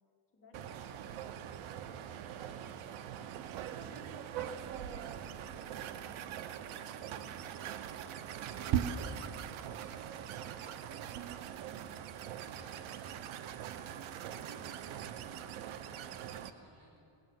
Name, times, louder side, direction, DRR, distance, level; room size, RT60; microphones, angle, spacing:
voice 1, 0.3-2.7 3.7-5.8, left 3 dB, 30° left, -3 dB, 2.1 m, -61 dB
sound 1, 0.5-16.5, right 9 dB, 85° right, 0.8 m, -41 dB
voice 2, 12.5-13.2 15.5-17.0, right 2 dB, 45° right, -3 dB, 2.6 m, -62 dB
17.5 x 6.5 x 9.0 m, 2.7 s
cardioid pair, 180°, 46 cm